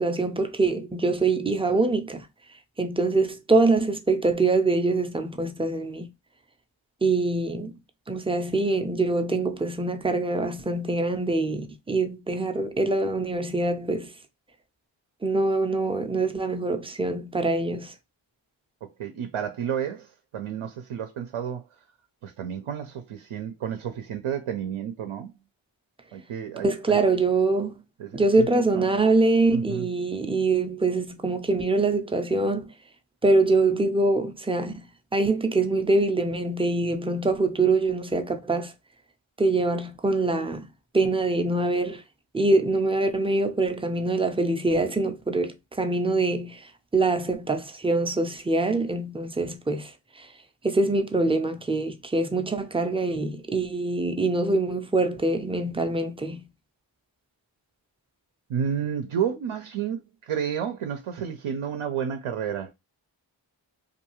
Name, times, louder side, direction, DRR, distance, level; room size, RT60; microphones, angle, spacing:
voice 1, 0.0-2.3 2.8-6.1 7.0-7.8 8.1-14.1 15.2-17.9 26.6-27.8 28.1-32.7 33.2-34.9 35.1-38.7 39.4-40.7 40.9-42.0 42.3-50.3 50.6-56.5, right 2 dB, 10° right, 0.4 m, -24 dB
voice 2, 18.8-21.6 22.2-25.3 26.1-27.0 28.0-28.5 28.8-28.9 29.5-29.8 58.5-62.7, right 8 dB, 75° right, 0.6 m, -31 dB
2.6 x 2.3 x 3.0 m
cardioid pair, 45°, 50 cm